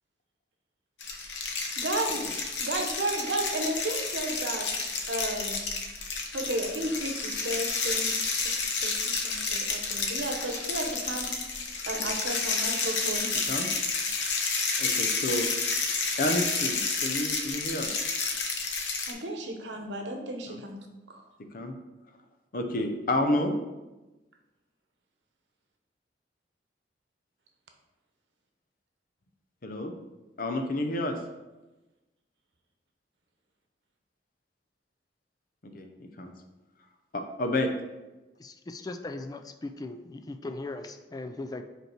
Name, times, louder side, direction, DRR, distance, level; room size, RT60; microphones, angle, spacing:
sound 1, 1.0-19.1, left 4 dB, 80° left, 0.9 m, -30 dB
voice 1, 1.8-5.7 6.3-8.5 8.8-11.5 11.9-13.3 19.1-20.8 21.1-21.3, right 1 dB, 85° right, 3 dB, 1.0 m, -33 dB
voice 2, 14.8-15.5 16.2-17.9 20.5-20.6 21.5-21.7 22.5-23.5 29.6-29.9 30.4-31.2 35.7-35.9 36.2-36.3 37.1-37.7, left 1 dB, 50° left, 5 dB, 0.7 m, -29 dB
voice 3, 38.4-41.6, left 2 dB, 20° left, 8 dB, 0.3 m, -38 dB
5.4 x 4.4 x 4.5 m, 1.1 s
head